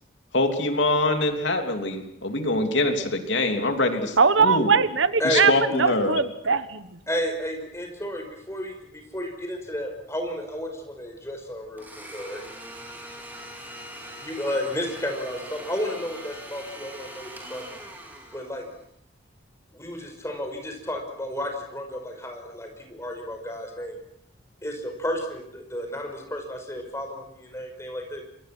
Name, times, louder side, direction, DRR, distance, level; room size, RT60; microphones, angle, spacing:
voice 1, 0.3-4.7 5.2-6.1, left 2 dB, 70° left, 5 dB, 3.1 m, -24 dB
voice 2, 4.2-7.0, right 5 dB, 80° right, 13 dB, 1.3 m, -21 dB
voice 3, 7.1-12.4 14.1-17.8 18.3-18.6 19.7-24.0 24.6-28.2, equal, 15° left, 3 dB, 5.4 m, -32 dB
Domestic sounds home sounds, 11.8-18.8, right 1 dB, 10° right, 4.5 m, -42 dB
28.0 x 22.5 x 6.2 m, 0.75 s
head